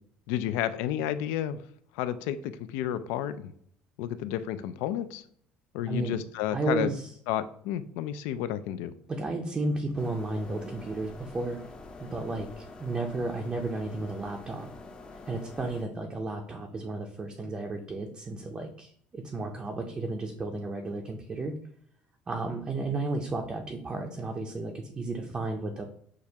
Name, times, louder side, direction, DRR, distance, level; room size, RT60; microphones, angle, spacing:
voice 1, 0.3-1.6 2.0-3.5 4.0-5.2 5.7-6.9 7.3-8.9, left 11 dB, 90° left, 13 dB, 0.3 m, -31 dB
voice 2, 6.5-7.1 9.1-11.6 12.0-14.7 15.3-21.5 22.3-25.8, right 2 dB, 20° right, 2 dB, 0.5 m, -33 dB
sound 1, 10.0-15.8, left 2 dB, 25° left, 0.5 m, -46 dB
6.4 x 2.4 x 2.8 m, 0.64 s
cardioid pair, 130°, 4 cm